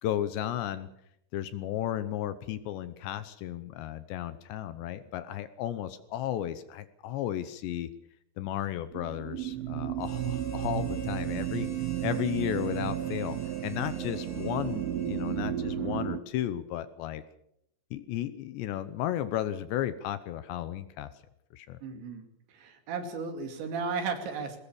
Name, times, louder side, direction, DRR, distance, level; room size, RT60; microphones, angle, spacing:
voice 1, 0.0-0.9 1.3-7.9 8.4-11.7 12.0-13.4 13.6-17.2 17.9-21.1 21.5-21.8, left 12 dB, 75° left, 13 dB, 2.9 m, -34 dB
sound 1, 8.9-16.2, right 12 dB, 85° right, 3.7 m, -33 dB
Harmonica, 10.0-15.8, equal, 5° left, 2.1 m, -44 dB
voice 2, 21.8-22.2 22.6-24.6, right 5 dB, 65° right, 6 dB, 4.8 m, -34 dB
21.5 x 20.0 x 7.1 m, 0.73 s
omnidirectional pair, 5.6 m